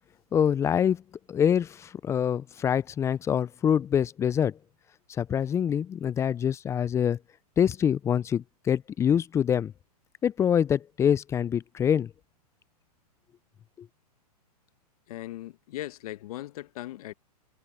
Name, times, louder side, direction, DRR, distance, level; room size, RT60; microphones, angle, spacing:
voice 1, 0.3-1.0 1.3-4.6 5.1-7.2 7.6-9.7 10.2-12.1 13.8-13.9, left 8 dB, 15° left, 0.3 m, -25 dB
voice 2, 15.1-17.1, left 15 dB, 65° left, 1.1 m, -38 dB
hypercardioid pair, 125°, 20 cm